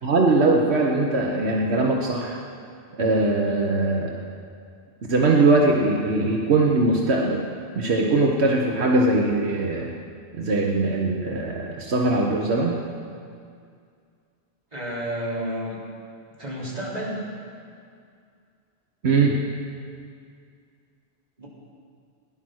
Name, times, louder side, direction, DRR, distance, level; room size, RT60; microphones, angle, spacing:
voice 1, 0.0-2.4 3.0-4.1 5.1-7.4 7.7-9.9 10.4-12.8 19.0-19.4, right 2 dB, 85° right, -1 dB, 1.4 m, -21 dB
voice 2, 14.7-15.8 16.4-17.2 21.4-21.5, right 1 dB, 40° right, -7 dB, 3.8 m, -30 dB
16.0 x 11.0 x 6.4 m, 2.3 s
omnidirectional pair, 1.1 m